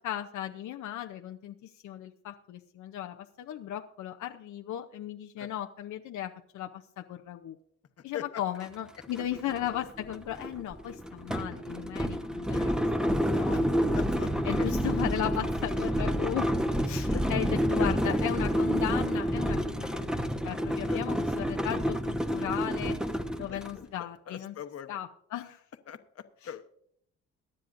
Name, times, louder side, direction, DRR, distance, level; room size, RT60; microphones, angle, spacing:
voice 1, 0.0-7.6 8.0-12.7 13.1-13.9 14.4-16.5 16.8-23.0 23.4-24.5 24.9-25.6 26.4-26.5, left 11 dB, 75° left, 4 dB, 0.8 m, -36 dB
sound 1, 8.6-8.7 9.0-23.8, equal, ahead, 0.9 m, -29 dB
voice 2, 13.9-14.3 14.6-14.7 17.1-17.2 17.8-18.2 20.9-21.0 23.5-23.9 24.3-25.0 25.9-26.6, left 8 dB, 55° left, 8 dB, 1.1 m, -41 dB
22.5 x 9.9 x 2.6 m, 0.69 s
cardioid pair, 90°, 30 cm